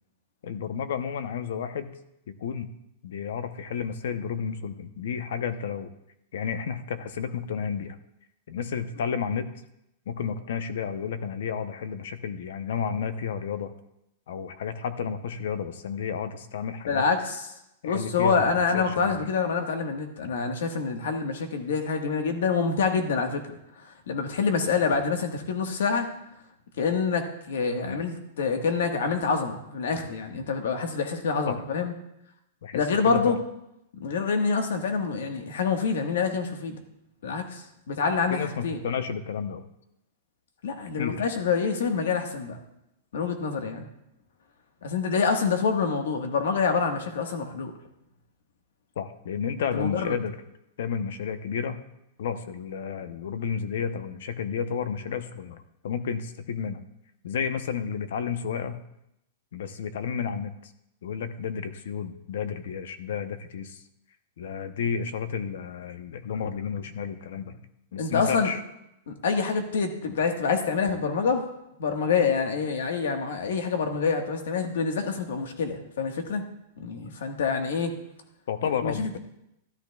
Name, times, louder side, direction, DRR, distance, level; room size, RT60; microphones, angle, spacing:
voice 1, 0.4-1.9 2.3-2.7 3.0-5.9 6.3-8.0 8.5-9.5 10.1-13.7 14.3-17.1 17.8-19.2 27.9-28.0 31.5-31.6 32.6-33.4 38.3-39.7 40.9-41.3 49.0-50.3 50.8-51.8 52.2-56.8 57.2-58.8 59.5-60.7 61.0-63.8 64.4-67.7 67.9-68.6 78.5-79.0, left 7 dB, 65° left, 11 dB, 0.8 m, -31 dB
voice 2, 16.9-17.5 17.8-23.4 23.8-26.1 26.8-31.9 32.7-33.4 34.0-36.8 37.2-38.8 40.6-42.6 43.1-43.9 44.8-47.7 49.7-50.2 68.0-68.5 69.1-71.5 71.8-76.4 76.8-77.9 78.8-79.2, left 5 dB, 80° left, 5 dB, 1.4 m, -26 dB
13.0 x 12.0 x 2.3 m, 0.84 s
supercardioid pair, 180°, 0 cm